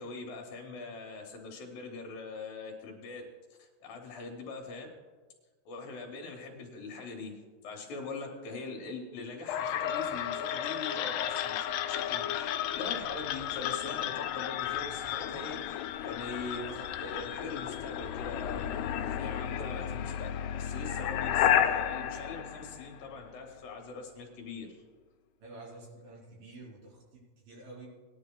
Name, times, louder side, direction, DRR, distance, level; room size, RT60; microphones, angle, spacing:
voice 1, 0.0-3.2 3.6-4.9 5.7-7.3 7.6-20.3 20.6-24.7, left 3 dB, 70° left, 1 dB, 2.7 m, -42 dB
sound 1, 9.5-23.4, left 10 dB, 85° left, 2.5 m, -32 dB
voice 2, 25.4-27.9, right 2 dB, 65° right, -4 dB, 5.0 m, -49 dB
19.5 x 10.5 x 2.3 m, 1.4 s
omnidirectional pair, 4.5 m